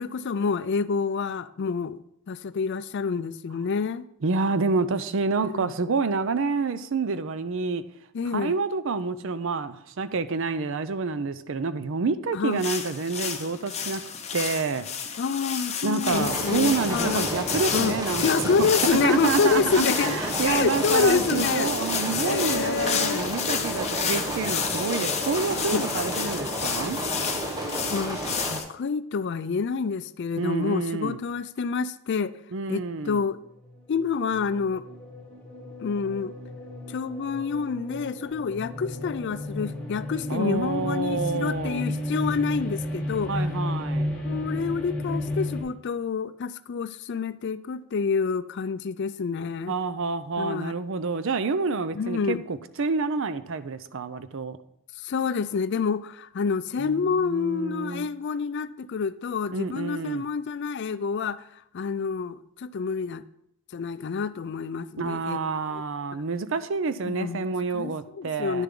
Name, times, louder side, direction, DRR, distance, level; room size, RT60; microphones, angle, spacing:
voice 1, 0.0-2.0 2.3-4.1 5.5-5.7 8.1-8.6 12.3-12.6 15.2-17.3 17.7-18.0 18.2-20.2 20.4-21.7 22.2-23.3 25.7-25.8 27.9-32.4 32.7-33.4 33.9-34.8 35.8-36.3 36.9-43.5 44.3-49.7 50.4-50.7 52.0-52.4 55.0-63.2 63.7-65.8 67.0-68.6, left 5 dB, 50° left, 15 dB, 0.4 m, -28 dB
voice 2, 4.2-7.8 8.2-14.0 14.3-14.9 15.8-27.0 30.4-31.2 32.5-33.2 40.3-41.8 43.3-44.1 49.7-54.6 56.8-58.1 59.5-60.2 65.0-68.6, right 4 dB, 60° right, 13 dB, 0.5 m, -28 dB
sound 1, 12.6-28.6, left 7 dB, 30° left, 0.8 m, -31 dB
sound 2, 16.1-28.6, right 1 dB, 15° right, 1.0 m, -31 dB
sound 3, 33.7-45.6, left 1 dB, 10° left, 2.6 m, -33 dB
10.0 x 6.8 x 3.7 m, 0.75 s
head